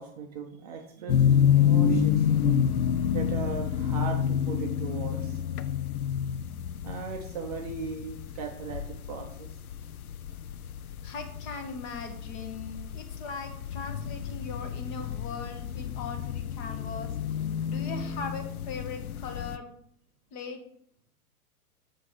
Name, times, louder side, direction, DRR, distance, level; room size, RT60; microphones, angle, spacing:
voice 1, 0.0-2.3 3.1-5.4 6.8-9.6, right 5 dB, 25° right, 3 dB, 0.5 m, -38 dB
sound 1, 1.1-19.6, left 8 dB, 70° left, 0.5 m, -28 dB
voice 2, 11.0-17.1 17.6-19.7 20.3-20.6, left 5 dB, 30° left, 5 dB, 1.0 m, -39 dB
6.6 x 3.7 x 4.6 m, 0.68 s
figure-of-eight pair, 110°, 46 cm